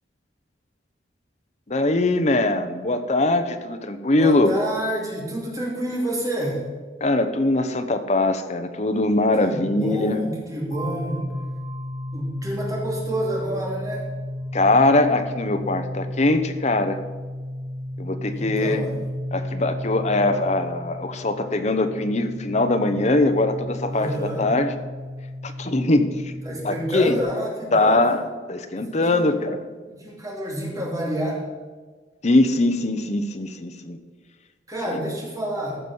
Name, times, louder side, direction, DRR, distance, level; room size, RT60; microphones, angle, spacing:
voice 1, 1.7-4.5 7.0-10.2 14.5-17.0 18.0-18.8 19.3-24.7 25.4-26.3 26.6-27.2 27.7-28.2 28.5-29.6 32.2-34.0 34.9-35.0, left 2 dB, 40° left, 8 dB, 0.8 m, -21 dB
voice 2, 4.2-6.6 9.4-11.3 12.1-14.1 18.3-18.9 23.9-24.5 26.4-28.2 28.7-29.5 29.9-31.4 34.7-35.8, right 1 dB, 20° right, -3 dB, 2.6 m, -29 dB
sound 1, 10.7-27.2, left 1 dB, 80° right, 4.1 m, -33 dB
15.0 x 6.1 x 5.5 m, 1.4 s
head